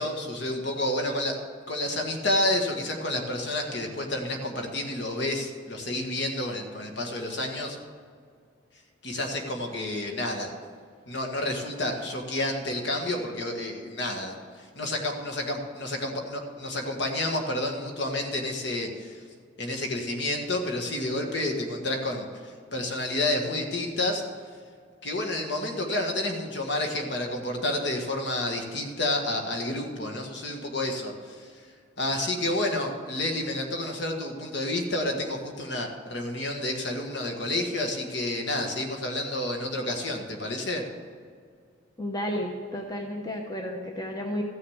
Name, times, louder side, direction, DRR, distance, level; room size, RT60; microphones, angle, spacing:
voice 1, 0.0-1.4 1.7-7.8 9.0-10.5 11.1-14.4 14.8-19.2 19.6-24.2 25.0-31.5 32.0-40.8, left 1 dB, 55° left, 2 dB, 1.6 m, -30 dB
voice 2, 42.0-44.4, equal, 20° left, 1 dB, 0.8 m, -32 dB
14.5 x 6.6 x 7.2 m, 2.1 s
head